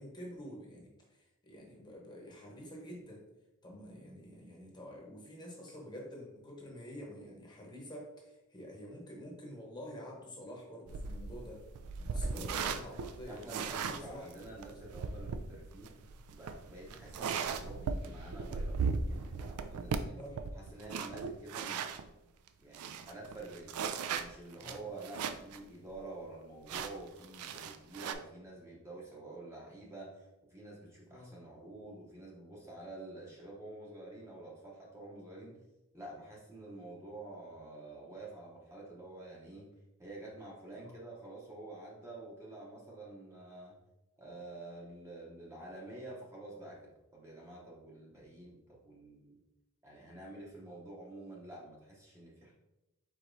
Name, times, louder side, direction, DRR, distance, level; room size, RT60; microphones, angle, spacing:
voice 1, 0.0-3.2 3.6-11.6 12.0-14.3 20.2-20.4 24.6-24.8 31.1-31.3 40.8-41.0, equal, 20° left, -1 dB, 0.8 m, -48 dB
sound 1, 10.9-22.1 22.5-22.6 22.7-25.6 25.9-26.0 26.7-28.1, right 5 dB, 85° right, 0.4 m, -38 dB
voice 2, 13.2-15.9 16.3-18.8 19.1-20.2 20.6-21.9 22.6-23.8 24.2-35.6 35.9-39.7 40.0-43.8 44.2-49.4 49.8-52.5, right 2 dB, 10° right, -4 dB, 0.7 m, -48 dB
4.8 x 4.2 x 2.6 m, 0.97 s
head